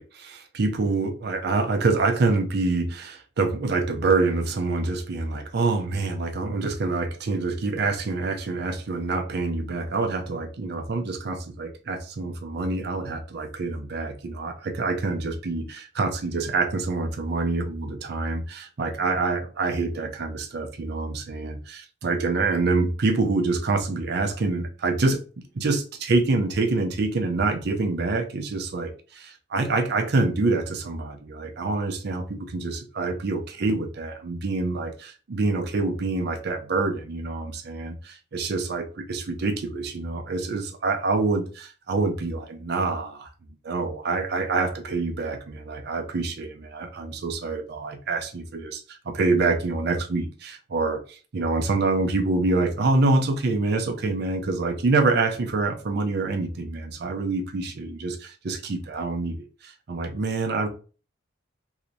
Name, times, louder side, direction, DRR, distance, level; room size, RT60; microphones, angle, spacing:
voice 1, 0.0-25.2 25.5-43.3 43.6-59.4 59.6-60.7, right 3 dB, 55° right, 0.5 m, -26 dB
3.1 x 2.8 x 2.6 m
head